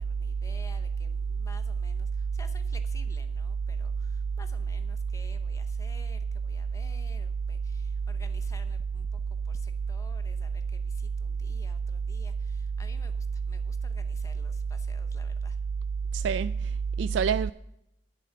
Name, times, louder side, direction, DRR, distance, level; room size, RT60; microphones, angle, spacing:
voice 1, 0.0-9.2 9.4-15.6, left 2 dB, 20° left, 0.7 m, -53 dB
voice 2, 16.1-17.5, right 6 dB, 80° right, 0.3 m, -27 dB
11.0 x 10.5 x 5.7 m
head